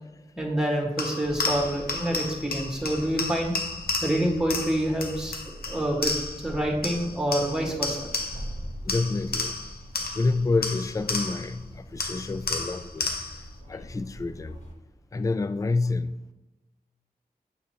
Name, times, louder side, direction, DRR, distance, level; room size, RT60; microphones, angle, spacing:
voice 1, 0.4-3.5 4.0-6.1 6.4-8.1, right 1 dB, 5° right, 1.7 m, -27 dB
sound 1, 1.0-6.5 6.8-8.6 8.9-11.6 12.0-13.5, left 3 dB, 75° left, 0.8 m, -32 dB
sound 2, 1.2-14.7, equal, 45° left, 1.7 m, -43 dB
voice 2, 8.8-9.6 10.1-13.1 13.7-14.6 15.1-16.1, left 3 dB, 20° left, 0.3 m, -28 dB
6.6 x 5.5 x 3.0 m
cardioid pair, 45°, 16 cm